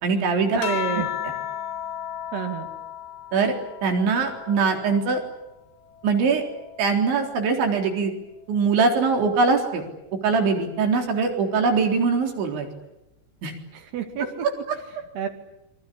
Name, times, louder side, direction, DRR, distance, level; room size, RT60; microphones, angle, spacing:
voice 1, 0.0-0.6 3.3-5.2 6.0-6.5 6.8-8.1 8.5-9.9 10.2-12.7 13.4-13.5, right 4 dB, 80° right, 3 dB, 6.3 m, -22 dB
voice 2, 0.5-1.1 2.3-2.7 13.7-14.5 15.1-15.3, right 7 dB, 65° right, 6 dB, 4.4 m, -29 dB
sound 1, 0.6-5.4 5.9-7.6 8.8-9.3, left 10 dB, 90° left, 4.0 m, -35 dB
28.0 x 24.0 x 8.6 m, 0.90 s
omnidirectional pair, 5.2 m